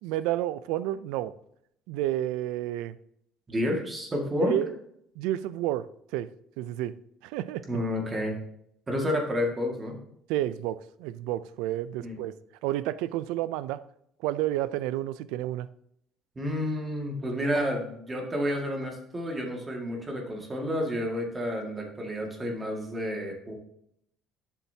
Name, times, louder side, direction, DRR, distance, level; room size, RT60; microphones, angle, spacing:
voice 1, 0.0-1.3 1.9-3.0 4.4-4.7 5.2-6.3 6.6-7.0 7.2-7.7 10.3-12.3 12.6-13.8 14.2-15.7, right 13 dB, 90° right, 0.4 m, -30 dB
voice 2, 3.5-4.6 7.7-8.3 8.9-10.0 12.0-12.2 16.4-23.5, equal, 20° right, 2.0 m, -30 dB
11.5 x 7.1 x 2.8 m
cardioid pair, 145°, 0 cm